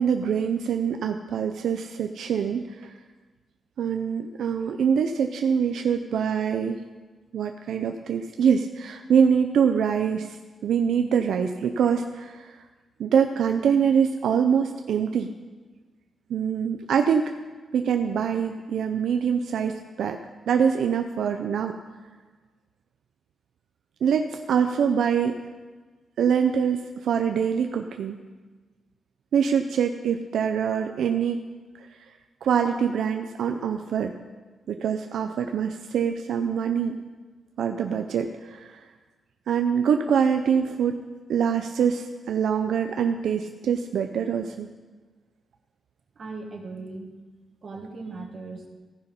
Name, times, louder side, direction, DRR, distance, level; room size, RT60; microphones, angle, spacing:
voice 1, 0.0-2.9 3.8-6.8 7.3-10.4 10.6-12.6 13.0-15.3 16.3-17.3 17.7-20.2 20.5-21.8 24.0-25.4 26.2-28.2 29.3-31.4 31.8-31.9 32.4-34.1 34.7-37.0 37.6-38.8 39.5-41.0 41.3-44.7, right 7 dB, 85° right, 5 dB, 0.4 m, -24 dB
voice 2, 46.1-47.1 47.6-48.7, right 3 dB, 50° right, 2 dB, 1.6 m, -38 dB
15.0 x 5.6 x 5.2 m, 1.3 s
cardioid pair, 110°, 0 cm